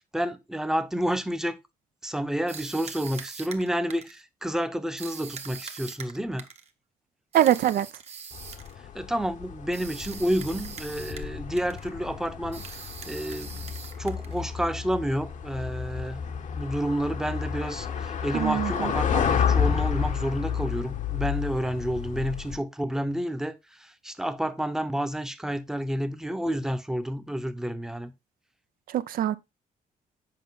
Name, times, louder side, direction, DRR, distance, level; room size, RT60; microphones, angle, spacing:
voice 1, 0.0-1.6 2.0-6.5 8.9-12.6 13.1-13.7 14.0-16.2 16.5-28.1, equal, 5° right, 0.7 m, -30 dB
sound 1, 2.5-4.2 5.0-6.7 7.3-8.7 9.7-11.3 11.6-11.9 12.5-14.4, right 6 dB, 45° right, 1.1 m, -42 dB
voice 2, 7.3-7.9 18.3-18.9 28.9-29.3, right 11 dB, 80° right, 0.6 m, -23 dB
sound 2, 8.3-22.6, left 7 dB, 55° left, 0.9 m, -31 dB
7.6 x 5.1 x 3.8 m
cardioid pair, 125°, 15 cm